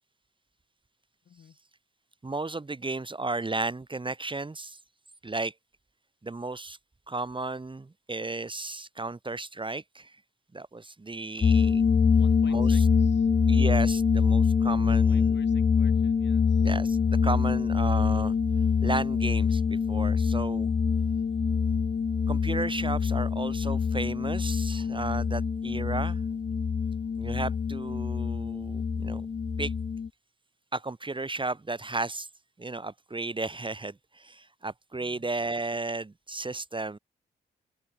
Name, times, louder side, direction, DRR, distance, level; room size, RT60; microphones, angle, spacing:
voice 1, 1.2-1.6 12.1-13.3 14.7-16.7 35.0-35.3, left 8 dB, 65° left, 5.9 m, -53 dB
voice 2, 2.2-4.8 5.2-5.5 6.2-6.8 7.1-10.2 10.5-11.8 12.5-12.8 13.5-15.4 16.6-18.3 18.8-20.7 22.3-26.2 27.2-29.3 29.6-29.7 30.7-32.3 32.6-37.0, right 3 dB, 25° right, 1.8 m, -34 dB
sound 1, 11.4-30.1, left 6 dB, 35° left, 0.8 m, -25 dB
open air
hypercardioid pair, 45°, 20 cm